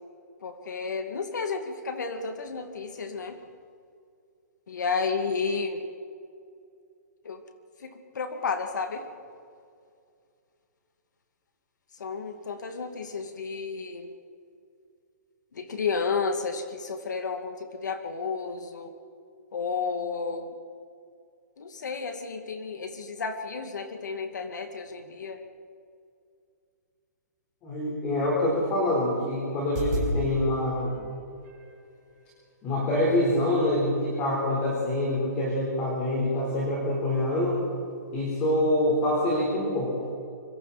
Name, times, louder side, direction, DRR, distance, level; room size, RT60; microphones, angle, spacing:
voice 1, 0.4-3.4 4.7-5.8 7.2-7.4 7.8-9.1 12.0-14.1 15.5-18.9 19.5-20.5 21.6-25.4, left 5 dB, 85° left, 6 dB, 2.5 m, -32 dB
voice 2, 27.6-31.0 32.6-37.6 38.1-40.0, left 1 dB, 15° left, -4 dB, 4.4 m, -25 dB
sound 1, 29.6-30.1 30.8-31.7 32.8-32.9 33.5-33.7 34.1-34.4 34.8-34.9, right 2 dB, 25° right, 6.4 m, -34 dB
26.0 x 25.5 x 4.4 m, 2.4 s
hypercardioid pair, 180°, 9 cm